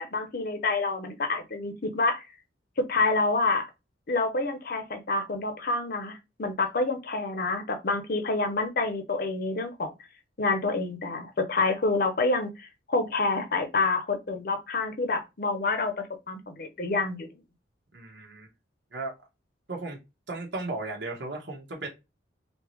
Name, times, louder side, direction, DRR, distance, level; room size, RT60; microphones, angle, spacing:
voice 1, 0.0-2.2 2.8-3.6 4.1-9.9 10.4-17.3, left 3 dB, 55° left, 0.7 m, -28 dB
voice 2, 17.9-18.5 18.9-19.1 19.7-20.0 20.3-21.9, right 2 dB, 70° right, 1.1 m, -35 dB
3.4 x 2.8 x 3.1 m
head